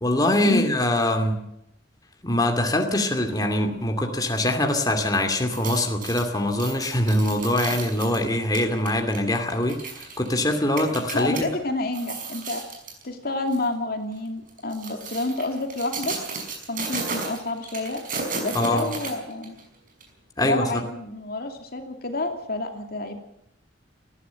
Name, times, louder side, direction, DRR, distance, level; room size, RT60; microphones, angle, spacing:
voice 1, 0.0-1.4 2.2-11.5 18.5-18.8 20.4-20.8, left 1 dB, 20° left, 4 dB, 2.6 m, -23 dB
sound 1, 5.4-11.4 11.8-13.0 13.5-13.7 14.5-19.6 20.0-20.1, right 4 dB, 45° right, 5.7 m, -34 dB
voice 2, 11.1-12.6 13.0-16.1 16.7-18.0 18.4-19.5 20.4-23.2, left 2 dB, 55° left, 5 dB, 2.6 m, -29 dB
19.5 x 14.5 x 9.1 m, 0.78 s
head